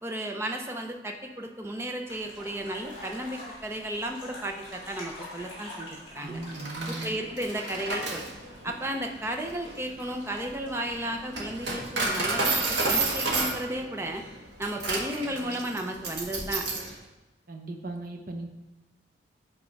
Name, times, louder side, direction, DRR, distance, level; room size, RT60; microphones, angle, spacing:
voice 1, 0.0-6.4 6.9-8.2 8.6-14.2 14.6-16.7, right 1 dB, 15° right, 3 dB, 0.6 m, -34 dB
sound 1, 2.1-12.4, left 1 dB, 30° left, 2.3 m, -47 dB
voice 2, 6.2-7.1 17.5-18.5, right 2 dB, 50° right, 3 dB, 0.8 m, -37 dB
Coin (dropping), 6.4-16.9, right 3 dB, 80° right, 1.5 m, -31 dB
8.4 x 3.6 x 5.2 m, 1.1 s
head